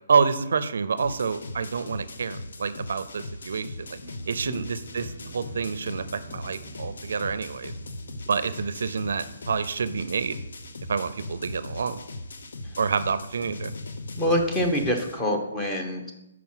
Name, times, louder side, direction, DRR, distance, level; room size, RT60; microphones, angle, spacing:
voice 1, 0.1-4.0 4.3-7.7 8.3-10.4 10.9-12.0 12.8-13.7, right 5 dB, 70° right, 13 dB, 0.4 m, -28 dB
sound 1, 1.0-15.2, left 2 dB, 70° left, 0.7 m, -39 dB
sound 2, 4.0-14.1, right 2 dB, 55° left, 1.8 m, -48 dB
voice 2, 14.2-16.1, equal, 10° left, 3 dB, 0.8 m, -26 dB
5.9 x 4.8 x 5.6 m, 0.93 s
hypercardioid pair, 165°, 0 cm